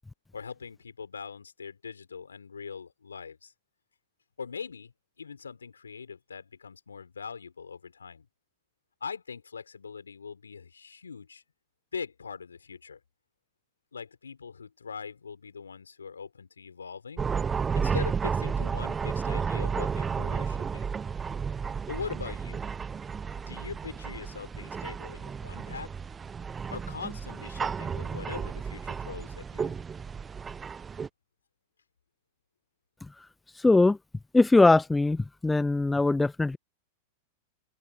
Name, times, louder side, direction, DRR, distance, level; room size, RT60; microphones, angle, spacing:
voice 1, 0.3-3.5 4.4-8.3 9.0-11.4 11.9-13.0 13.9-17.3 17.7-20.9 21.9-22.6 23.5-25.9 26.7-29.8, left 6 dB, 85° left, 5.1 m, -41 dB
sound 1, 17.2-31.1, right 6 dB, 20° right, 1.3 m, -32 dB
voice 2, 33.6-34.0 34.3-36.6, left 2 dB, 10° left, 0.4 m, -21 dB
open air
hypercardioid pair, 95°, 0 cm